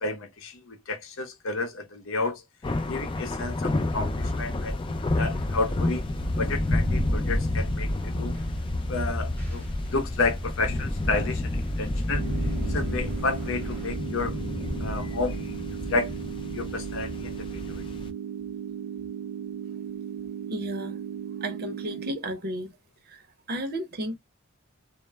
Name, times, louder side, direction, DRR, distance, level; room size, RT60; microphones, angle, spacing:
voice 1, 0.0-2.4 2.9-4.8 5.2-6.0 6.4-8.4 8.9-12.2 12.7-14.4 14.8-15.4 15.9-16.1 16.5-17.8, left 3 dB, 60° left, 0.6 m, -31 dB
sound 1, 2.6-18.1, left 1 dB, 25° left, 0.4 m, -30 dB
sound 2, 5.1-14.0, left 1 dB, 5° left, 0.9 m, -39 dB
sound 3, 12.1-22.1, right 8 dB, 75° right, 0.3 m, -36 dB
voice 2, 20.5-21.0 21.4-22.8 23.0-24.2, right 1 dB, 45° right, 0.7 m, -33 dB
2.1 x 2.0 x 3.2 m
head